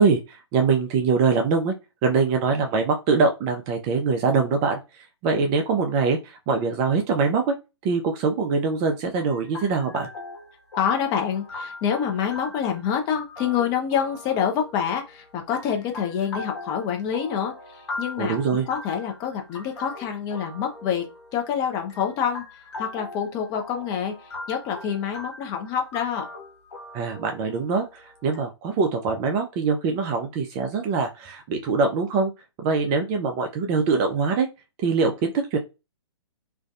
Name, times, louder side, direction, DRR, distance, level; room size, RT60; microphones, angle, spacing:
voice 1, 0.0-1.7 2.0-4.8 5.2-7.6 7.8-10.1 18.2-18.7 26.9-32.3 32.6-34.5 34.8-35.6, right 4 dB, 25° right, 4 dB, 0.3 m, -23 dB
sound 1, 9.2-28.4, left 2 dB, 65° left, 1.1 m, -41 dB
voice 2, 10.8-21.0 21.3-26.3, left 8 dB, 25° left, 3 dB, 0.5 m, -27 dB
2.5 x 2.2 x 2.4 m, 0.27 s
hypercardioid pair, 135°, 15 cm